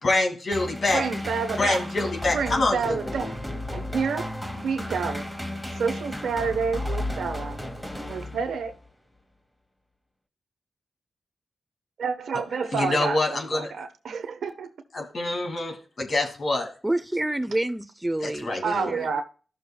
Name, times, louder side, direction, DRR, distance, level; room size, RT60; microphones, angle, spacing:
voice 1, 0.0-1.1 1.5-3.1 12.5-13.7 14.9-16.7 18.2-19.1, left 2 dB, 55° left, 2.5 m, -26 dB
sound 1, 0.5-8.8, left 1 dB, 5° left, 2.1 m, -34 dB
voice 2, 0.9-1.8 2.3-3.4 3.7-4.3 4.6-5.3 5.8-7.6 8.1-8.8 12.0-14.7 18.6-19.2, right 5 dB, 80° right, 1.1 m, -29 dB
voice 3, 16.8-19.2, right 1 dB, 15° right, 0.8 m, -28 dB
13.5 x 6.4 x 2.3 m
supercardioid pair, 45°, 0 cm